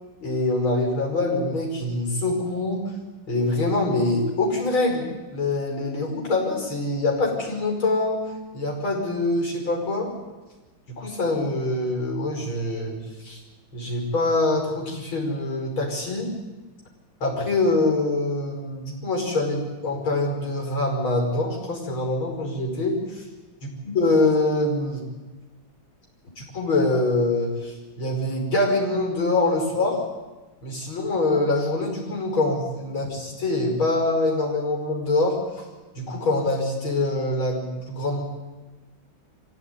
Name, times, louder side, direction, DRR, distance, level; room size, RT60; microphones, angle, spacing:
voice 1, 0.2-2.9 3.3-5.1 5.3-8.2 8.5-10.1 11.0-13.4 13.7-16.3 17.2-23.2 23.8-25.0 26.5-30.0 30.6-35.4 35.9-38.2, left 2 dB, 75° left, 0 dB, 6.4 m, -24 dB
25.0 x 16.5 x 9.7 m, 1.2 s
omnidirectional pair, 2.2 m